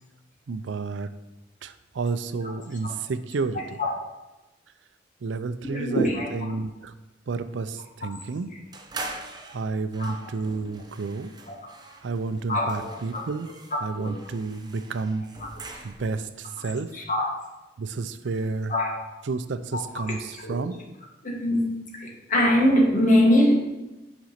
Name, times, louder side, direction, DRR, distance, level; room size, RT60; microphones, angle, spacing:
voice 1, 0.5-1.1 1.6-3.6 5.2-6.9 7.3-8.5 9.5-11.3 12.0-13.5 13.8-15.3 15.8-16.9 17.8-18.7 19.2-20.8, right 4 dB, 85° right, 12 dB, 0.5 m, -30 dB
voice 2, 5.6-6.3 10.0-10.1 11.5-11.6 12.5-12.9 13.1-13.2 14.0-14.2 15.6-15.7 16.9-17.3 18.7-18.9 19.7-19.8 20.4-20.6 21.2-21.7 22.0-23.5, left 1 dB, 45° left, -1 dB, 1.6 m, -22 dB
sound 1, 8.7-16.2, right 2 dB, 25° right, 0.7 m, -42 dB
5.8 x 5.2 x 5.7 m, 1.0 s
head